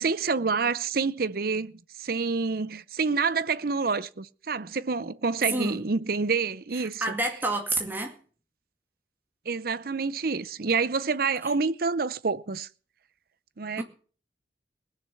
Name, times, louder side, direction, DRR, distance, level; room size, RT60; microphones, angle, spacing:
voice 1, 0.0-1.7 2.0-7.0 9.5-12.7 13.6-13.8, right 4 dB, 55° right, 0.7 m, -27 dB
voice 2, 5.5-5.8 7.0-8.1 13.8-13.9, right 1 dB, 10° right, 2.1 m, -28 dB
20.0 x 6.7 x 7.7 m
head